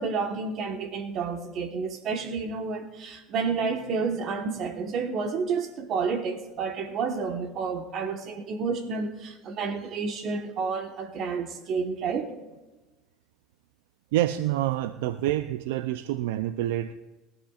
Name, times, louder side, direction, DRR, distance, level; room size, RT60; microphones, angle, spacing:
voice 1, 0.0-12.3, right 5 dB, 50° right, 1.3 m, -30 dB
voice 2, 14.1-17.0, right 13 dB, 75° right, 0.4 m, -27 dB
22.5 x 13.5 x 2.5 m
hypercardioid pair, 85°, 0 cm